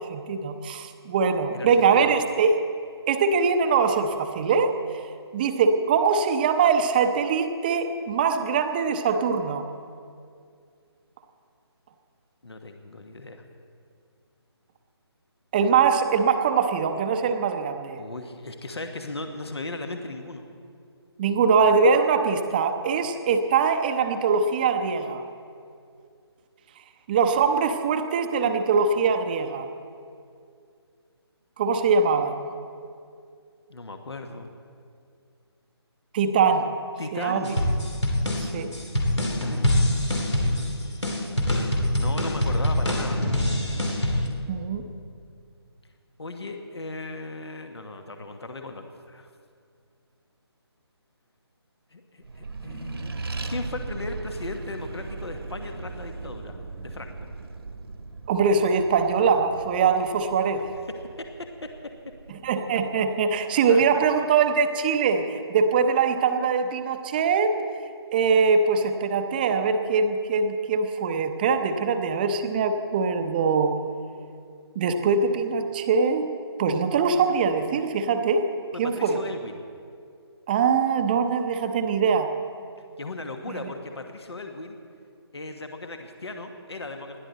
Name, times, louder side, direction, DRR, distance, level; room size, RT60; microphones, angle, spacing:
voice 1, 0.0-2.6 3.1-4.8 5.3-9.6 15.5-18.0 21.2-25.2 27.1-29.7 31.6-32.5 36.1-36.7 37.1-37.5 38.4-38.7 44.5-44.9 58.3-60.7 62.4-67.6 68.1-73.8 74.8-76.3 76.6-78.5 78.8-79.2 80.5-82.3 83.5-83.6, right 5 dB, 20° right, 7 dB, 0.7 m, -22 dB
voice 2, 1.5-2.1 12.4-13.4 18.0-20.4 33.7-34.5 37.0-37.6 39.2-39.7 40.4-40.6 42.0-43.2 46.2-49.3 51.9-57.3 60.5-60.7 61.2-61.9 63.7-64.3 78.7-79.6 83.0-84.8 85.3-87.2, left 2 dB, 70° left, 5 dB, 1.4 m, -37 dB
sound 1, 37.4-44.3, left 1 dB, 90° left, 2.6 m, -24 dB
Accelerating revving vroom, 52.2-63.1, right 3 dB, 65° right, 1.3 m, -38 dB
20.5 x 13.0 x 4.1 m, 2.3 s
figure-of-eight pair, 150°, 14 cm